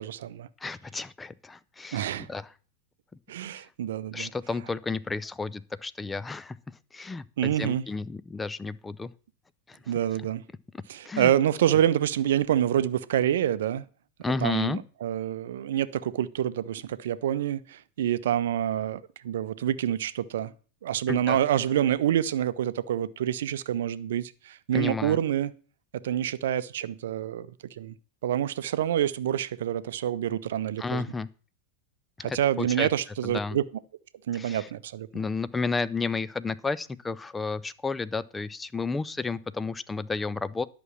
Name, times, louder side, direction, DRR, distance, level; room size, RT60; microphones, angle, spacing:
voice 1, 0.0-0.5 1.9-2.3 3.3-4.3 7.4-7.9 9.9-10.4 10.9-13.8 14.4-20.5 20.8-25.5 25.9-27.5 27.8-27.9 28.2-31.0 32.2-33.6 34.3-35.1, right 11 dB, 60° right, 0.7 m, -27 dB
voice 2, 0.6-2.5 4.1-6.6 6.9-9.1 9.7-9.9 11.0-11.3 14.2-14.8 21.1-21.4 24.7-25.2 30.8-31.3 32.2-32.9 33.2-33.6 34.3-34.7 35.1-40.6, left 4 dB, 10° left, 0.6 m, -32 dB
11.0 x 6.2 x 7.2 m
figure-of-eight pair, 90°, 0 cm